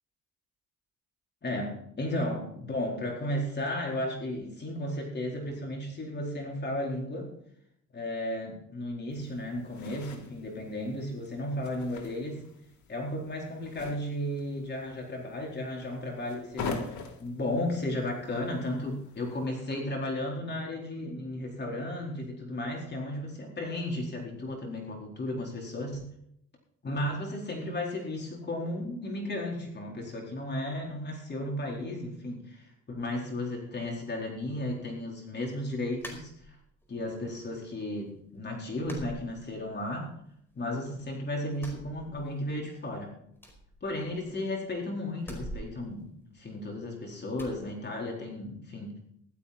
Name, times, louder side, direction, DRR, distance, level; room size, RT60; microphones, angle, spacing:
voice 1, 1.4-7.3 7.9-12.4 12.9-26.1 26.8-36.6 36.9-40.1 40.6-43.1 43.8-48.9, left 1 dB, 35° left, -1 dB, 4.4 m, -34 dB
sound 1, 9.1-19.5, left 4 dB, 70° left, 3.1 m, -44 dB
sound 2, 36.0-36.9 37.3-38.0 38.2-38.4 38.8-40.0 40.2-41.1 41.5-42.6 42.9-43.0 43.3-44.5 45.2-46.8 47.3-47.6, equal, 5° left, 4.8 m, -46 dB
15.5 x 12.5 x 4.3 m, 0.71 s
cardioid pair, 90°, 30 cm